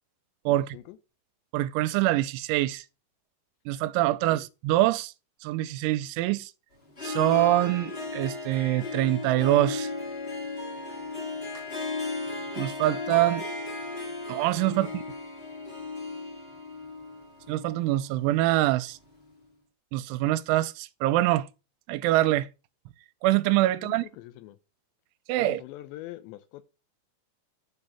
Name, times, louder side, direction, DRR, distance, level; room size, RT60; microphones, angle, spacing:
voice 1, 0.5-1.0 4.1-4.2 14.7-14.9 23.6-24.6 25.4-26.7, left 15 dB, 80° left, 2.8 m, -44 dB
voice 2, 1.5-2.8 3.7-5.1 5.4-6.5 7.0-9.9 12.6-13.4 14.3-15.0 17.5-19.0 19.9-21.5 21.9-22.5 23.2-24.0 25.3-25.6, right 16 dB, 85° right, 3.0 m, -24 dB
Harp, 6.9-18.8, left 3 dB, 30° left, 1.1 m, -35 dB
7.9 x 6.8 x 5.5 m
omnidirectional pair, 5.3 m